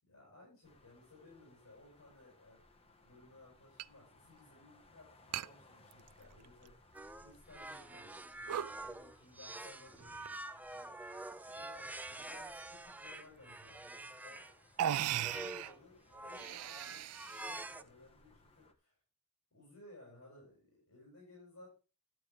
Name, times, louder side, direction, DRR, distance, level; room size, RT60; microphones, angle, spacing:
voice 1, 0.1-2.6 3.0-10.9 11.5-14.4 15.0-17.1 17.3-18.9 19.5-21.7, left 2 dB, 70° left, -3 dB, 6.5 m, -60 dB
sound 1, 0.6-18.7, left 2 dB, 25° left, 1.4 m, -65 dB
sound 2, 2.1-2.2 3.8-3.9 4.2-4.3 5.3-5.5 5.9-6.7 7.2-7.3 7.9-8.1 8.4-8.8 10.0-10.5 11.3-11.7 13.6-13.7 14.4-14.5 14.8-15.7 16.2-17.7, right 10 dB, 85° right, 0.4 m, -38 dB
sound 3, 6.9-14.6 15.1-15.8 16.1-17.8, right 2 dB, 5° right, 0.4 m, -47 dB
12.0 x 9.3 x 3.4 m, 0.33 s
head